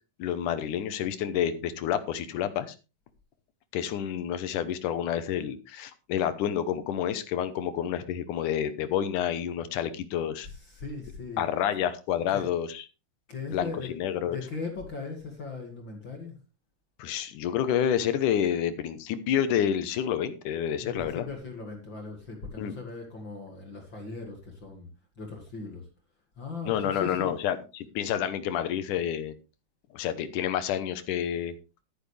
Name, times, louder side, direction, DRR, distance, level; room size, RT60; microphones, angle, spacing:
voice 1, 0.2-2.8 3.7-10.5 11.4-12.8 13.5-14.4 17.0-21.3 22.6-22.8 26.6-29.4 29.9-31.5, left 9 dB, 70° left, 12 dB, 2.4 m, -29 dB
voice 2, 10.5-11.5 12.3-12.5 13.3-14.0 14.3-16.4 20.8-24.9 25.2-25.9 26.4-27.3, left 4 dB, 40° left, 2 dB, 2.4 m, -38 dB
12.5 x 10.0 x 3.3 m, 0.30 s
omnidirectional pair, 3.9 m